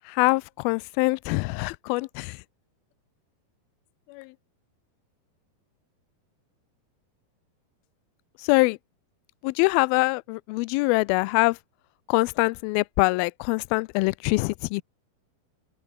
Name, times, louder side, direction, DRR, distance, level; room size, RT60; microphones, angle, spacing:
voice 1, 0.1-2.4 4.1-4.3 8.4-8.8 9.4-11.6 12.1-14.8, left 25 dB, 90° left, 2.1 m, -24 dB
open air
omnidirectional pair, 4.8 m